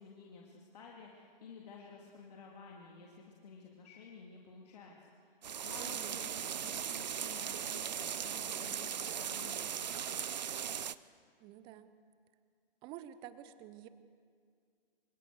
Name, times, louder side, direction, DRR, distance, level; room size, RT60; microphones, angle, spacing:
voice 1, 0.0-10.1, left 5 dB, 45° left, -1 dB, 2.9 m, -53 dB
Rain on river in Prague, 5.4-10.9, right 8 dB, 50° right, 0.8 m, -38 dB
voice 2, 5.8-6.2 11.4-11.9 12.8-13.9, right 12 dB, 15° right, 13 dB, 0.9 m, -49 dB
26.5 x 26.5 x 6.7 m, 2.1 s
figure-of-eight pair, 130°, 29 cm